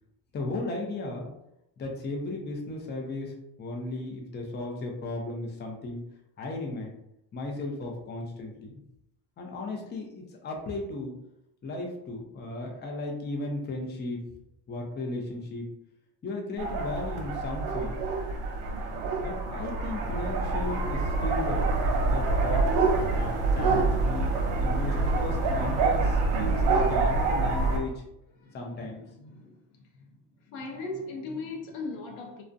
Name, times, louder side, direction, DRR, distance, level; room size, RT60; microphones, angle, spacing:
voice 1, 0.3-1.3 1.8-6.0 6.4-6.9 7.3-8.7 9.4-11.1 11.6-14.2 14.7-15.7 16.2-18.0 19.2-21.6 22.1-22.7 23.0-24.3 24.6-28.0 28.5-29.0, left 2 dB, 25° left, 0.5 m, -35 dB
sound 1, 16.6-27.8, right 3 dB, 70° right, 0.7 m, -26 dB
voice 2, 28.3-30.1 30.4-32.4, left 3 dB, 85° left, 0.7 m, -39 dB
2.5 x 2.1 x 2.5 m
cardioid pair, 105°, 45 cm